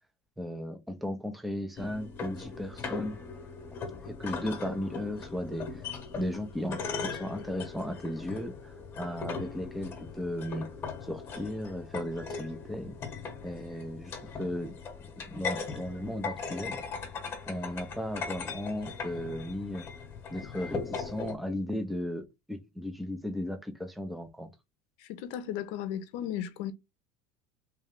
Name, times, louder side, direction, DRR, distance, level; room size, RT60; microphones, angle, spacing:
voice 1, 0.4-3.2 4.0-5.8 6.1-10.7 11.0-12.9 13.4-14.7 15.3-16.8 17.5-19.9 20.3-24.5, left 1 dB, ahead, 0.5 m, -36 dB
sound 1, 1.8-21.3, left 5 dB, 25° left, 1.1 m, -39 dB
voice 2, 25.0-26.7, left 10 dB, 60° left, 0.7 m, -35 dB
3.2 x 3.1 x 3.6 m
supercardioid pair, 150°, 11 cm